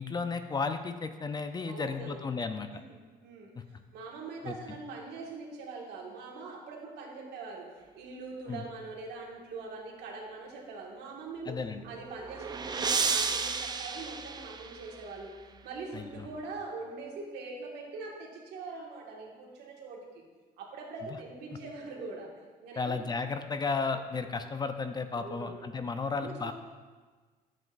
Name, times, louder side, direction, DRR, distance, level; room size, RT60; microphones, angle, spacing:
voice 1, 0.0-2.7 3.6-3.7 4.4-4.8 8.5-8.6 11.5-11.8 15.9-16.3 22.8-26.5, left 4 dB, 25° left, 8 dB, 0.5 m, -34 dB
voice 2, 1.7-2.3 2.8-3.0 3.2-3.5 3.9-7.7 7.9-11.6 11.8-15.3 15.6-20.0 20.6-22.3 22.6-23.0 23.9-24.3 25.1-25.6 26.1-26.5, right 3 dB, 80° right, -1 dB, 1.8 m, -42 dB
sound 1, 11.8-15.1, right 5 dB, 25° right, 0.5 m, -32 dB
11.0 x 7.6 x 2.5 m, 1.4 s
cardioid pair, 110°, 17 cm